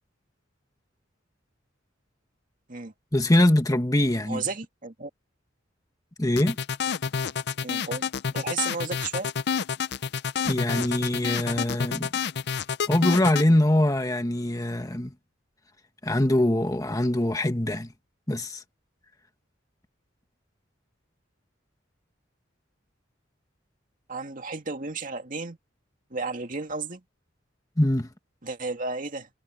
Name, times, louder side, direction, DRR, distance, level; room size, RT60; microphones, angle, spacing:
voice 1, 3.1-4.4 6.2-6.6 10.4-12.1 12.9-15.1 16.0-17.9 18.3-18.6 27.8-28.1, left 1 dB, 20° left, 1.5 m, -23 dB
voice 2, 4.3-5.1 7.6-9.3 24.1-25.6 26.1-27.0 28.4-29.3, right 4 dB, 45° right, 2.2 m, -33 dB
sound 1, 6.4-13.5, left 7 dB, 55° left, 0.5 m, -28 dB
head